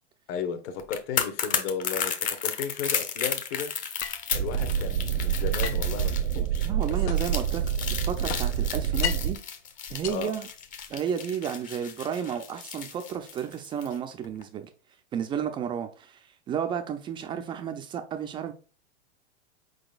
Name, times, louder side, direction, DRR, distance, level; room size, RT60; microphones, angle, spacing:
voice 1, 0.3-3.7 4.3-6.7 10.1-10.3, left 6 dB, 45° left, 1.0 m, -34 dB
sound 1, 0.8-13.9 14.2-14.4, left 7 dB, 25° left, 0.6 m, -33 dB
sound 2, 4.0-4.7 5.6-7.5 7.8-9.4 9.9-11.0, left 9 dB, 80° left, 0.6 m, -36 dB
sound 3, 4.3-9.4, right 9 dB, 70° right, 0.7 m, -27 dB
voice 2, 6.4-7.6 7.9-9.4 9.9-10.5 10.9-14.7 15.1-18.5, right 8 dB, 15° right, 0.3 m, -32 dB
4.6 x 3.9 x 2.3 m
hypercardioid pair, 115°, 34 cm